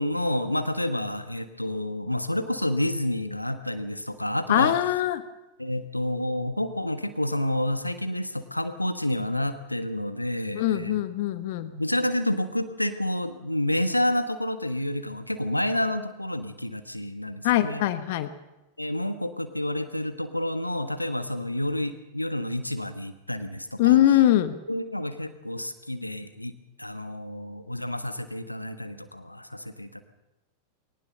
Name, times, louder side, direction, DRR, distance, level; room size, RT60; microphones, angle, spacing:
voice 1, 0.0-4.7 5.6-11.0 11.7-17.8 18.8-24.2 24.7-26.5 26.8-30.0, left 1 dB, 85° left, 9 dB, 1.4 m, -29 dB
voice 2, 4.5-5.2 10.5-11.7 17.4-18.3 23.8-24.5, left 13 dB, 50° left, 12 dB, 1.2 m, -22 dB
21.0 x 18.5 x 6.7 m, 1.0 s
figure-of-eight pair, 90°, 0 cm